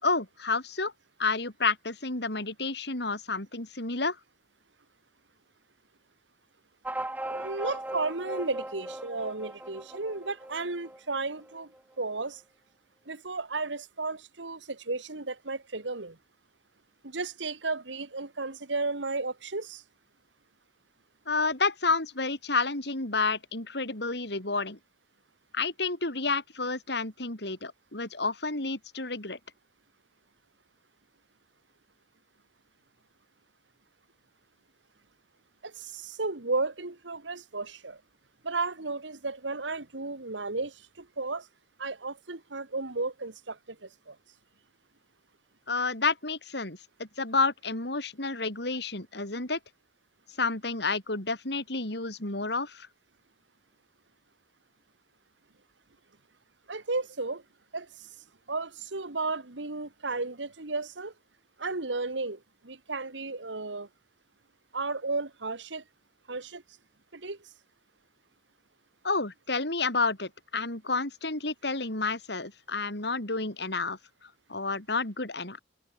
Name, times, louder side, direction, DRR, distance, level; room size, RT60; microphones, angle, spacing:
voice 1, 0.0-0.9 1.2-4.2 21.3-24.8 25.5-29.4 45.7-49.6 50.4-52.9 69.0-74.0 74.5-75.6, left 3 dB, 65° left, 4.4 m, -30 dB
sound 1, 6.8-11.8, right 1 dB, 10° right, 2.4 m, -38 dB
voice 2, 7.3-11.7 12.0-12.4 13.1-16.2 17.0-19.8 35.6-38.0 38.4-41.5 41.8-44.2 56.7-57.4 57.7-58.1 58.5-61.1 61.6-63.9 64.7-65.8 66.3-66.6 67.1-67.4, right 3 dB, 90° right, 2.1 m, -34 dB
head